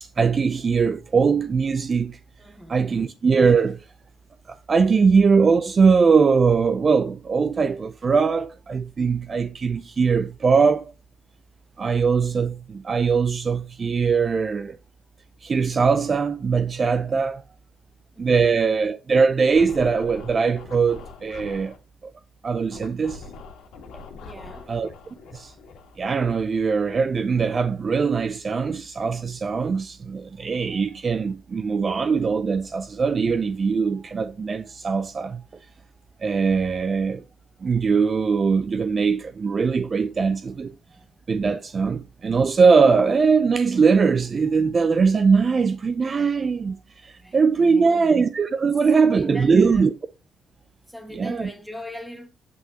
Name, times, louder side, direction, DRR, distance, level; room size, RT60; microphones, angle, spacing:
voice 1, 0.0-2.2 2.7-3.8 4.5-10.9 11.8-14.8 15.4-17.4 18.2-21.7 22.0-22.1 22.4-23.2 24.7-24.9 25.3-25.5 26.0-35.4 36.2-37.2 37.6-40.7 41.3-46.8 47.0-49.9 51.1-51.5, right 5 dB, 40° right, 0.5 m, -21 dB
voice 2, 2.4-3.1 18.1-18.7 24.2-24.8 32.7-32.8 40.9-41.1 47.2-48.2 48.6-49.9 50.9-52.3, left 1 dB, ahead, 1.7 m, -41 dB
Scratching (performance technique), 19.5-21.8 22.7-27.0, left 4 dB, 85° left, 1.6 m, -43 dB
7.9 x 5.5 x 2.9 m
cardioid pair, 90°, 0 cm